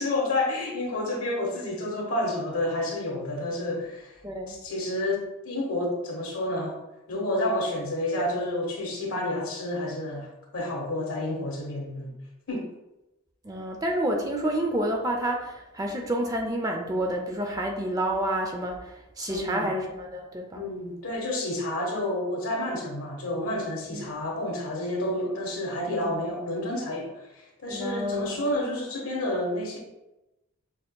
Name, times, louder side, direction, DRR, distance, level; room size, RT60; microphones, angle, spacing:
voice 1, 0.0-4.2 4.5-6.8 7.1-12.1 12.5-12.7 19.3-19.8 20.5-29.8, left 1 dB, 80° left, -1 dB, 1.2 m, -30 dB
voice 2, 4.2-4.6 13.4-20.7 23.9-24.1 25.9-26.2 27.7-28.5, right 1 dB, 15° right, 2 dB, 0.4 m, -29 dB
6.5 x 2.8 x 2.2 m, 0.96 s
head